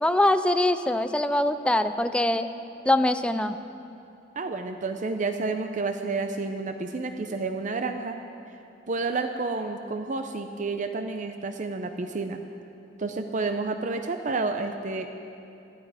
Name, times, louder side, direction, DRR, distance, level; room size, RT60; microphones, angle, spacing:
voice 1, 0.0-2.5 2.9-3.6, left 1 dB, 5° left, 9 dB, 0.4 m, -23 dB
voice 2, 4.4-8.2 8.9-12.4 13.0-15.1, right 3 dB, 45° right, 7 dB, 0.6 m, -30 dB
18.0 x 13.0 x 4.9 m, 2.8 s
head